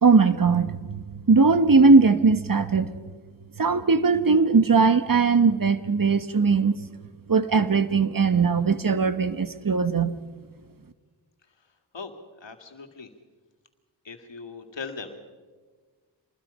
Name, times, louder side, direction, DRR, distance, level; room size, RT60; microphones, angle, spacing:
voice 1, 0.0-2.9 3.6-6.7 7.3-10.1, right 4 dB, 45° right, 12 dB, 1.3 m, -19 dB
voice 2, 12.4-13.1 14.1-15.3, left 4 dB, 70° left, 5 dB, 2.4 m, -39 dB
26.5 x 20.5 x 5.6 m, 1.4 s
cardioid pair, 45°, 45 cm